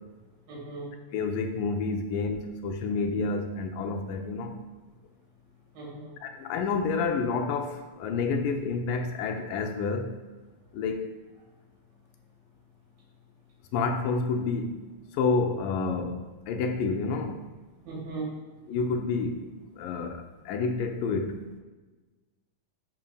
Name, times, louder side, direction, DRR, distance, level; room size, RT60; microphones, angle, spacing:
voice 1, 0.5-0.9 5.7-6.1 17.7-18.3, right 3 dB, 85° right, -5 dB, 4.4 m, -38 dB
voice 2, 1.1-4.6 6.2-10.1 10.7-11.1 13.7-14.8 15.1-16.2 16.5-17.4 18.7-19.4 19.8-21.4, left 4 dB, 80° left, 4 dB, 2.2 m, -29 dB
10.5 x 5.9 x 2.3 m, 1.2 s
omnidirectional pair, 4.0 m